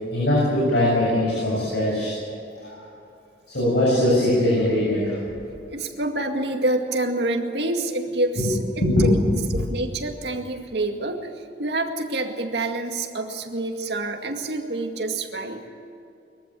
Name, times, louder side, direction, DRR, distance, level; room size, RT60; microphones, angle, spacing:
voice 1, 0.1-2.1 2.6-2.8 3.5-5.2 8.8-9.1, left 1 dB, 70° left, -5 dB, 7.5 m, -21 dB
voice 2, 5.7-9.2 9.5-11.2 11.6-15.7, right 2 dB, 65° right, 3 dB, 2.2 m, -27 dB
23.0 x 15.0 x 9.1 m, 2.6 s
head